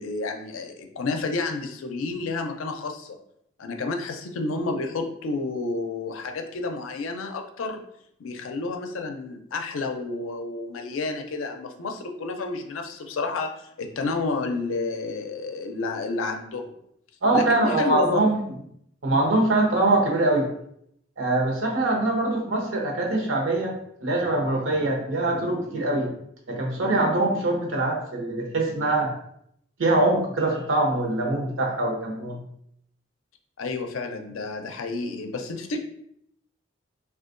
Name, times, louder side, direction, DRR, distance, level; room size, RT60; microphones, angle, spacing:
voice 1, 0.0-3.2 3.6-7.8 8.2-16.7 17.3-18.3 33.6-35.8, left 3 dB, 90° left, 4 dB, 0.4 m, -30 dB
voice 2, 17.2-18.4 19.0-20.5 21.2-23.7 24.0-26.1 26.5-29.1 29.8-32.4, right 2 dB, 85° right, 0 dB, 0.8 m, -23 dB
3.5 x 2.3 x 2.5 m, 0.72 s
head